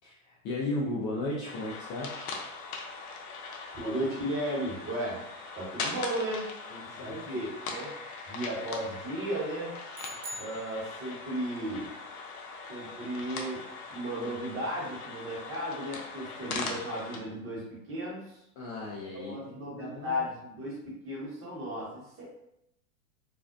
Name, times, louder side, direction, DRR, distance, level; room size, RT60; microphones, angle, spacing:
voice 1, 0.0-2.1 6.7-7.2 18.6-20.2, left 2 dB, 30° left, -5 dB, 0.4 m, -35 dB
sound 1, 1.4-17.2, left 4 dB, 80° left, 0.6 m, -41 dB
voice 2, 3.7-5.2 5.6-6.5 7.0-7.9 8.3-9.7 10.4-11.9 12.7-13.6 13.9-18.4 19.1-22.4, equal, 30° right, -5 dB, 1.1 m, -35 dB
sound 2, 9.9-11.4, right 1 dB, 60° right, 0.5 m, -44 dB
2.5 x 2.1 x 2.4 m, 0.82 s
hypercardioid pair, 105°, 43 cm